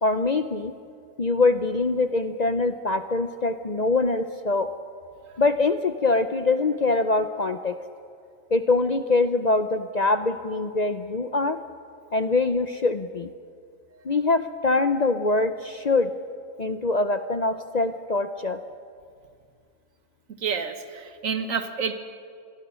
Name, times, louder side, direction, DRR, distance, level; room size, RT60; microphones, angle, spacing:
voice 1, 0.0-0.7 1.2-4.7 5.4-7.8 8.5-11.6 12.1-13.3 14.0-16.1 16.6-18.6, left 3 dB, 40° left, 10 dB, 0.6 m, -23 dB
voice 2, 20.4-22.0, right 6 dB, 80° right, 9 dB, 1.7 m, -29 dB
26.0 x 20.0 x 6.3 m, 2.3 s
omnidirectional pair, 1.4 m